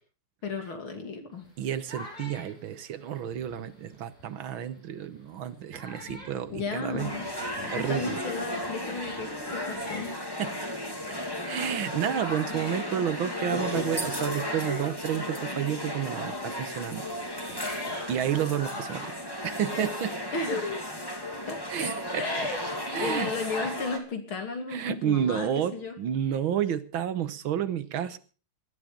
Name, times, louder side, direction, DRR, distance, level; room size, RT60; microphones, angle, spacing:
voice 1, 0.4-1.4 6.5-7.3 7.7-10.1 20.3-20.9 21.5-21.6 22.2-22.6 23.0-25.9, left 4 dB, 65° left, 6 dB, 3.5 m, -34 dB
parrot talking, 1.4-4.5 5.1-5.2 5.7-15.7 16.0-19.8, equal, 35° left, 7.7 m, -44 dB
voice 2, 1.6-7.1 7.7-8.2 10.4-10.7 11.1-11.2 11.4-17.7 18.1-19.1 19.4-20.2 21.7-22.5 22.9-23.3 23.6-23.7 24.7-28.2, right 9 dB, 70° right, 13 dB, 1.8 m, -31 dB
sound 1, 7.0-24.0, left 1 dB, 10° left, 2.7 m, -34 dB
18.5 x 12.0 x 5.2 m, 0.37 s
omnidirectional pair, 2.4 m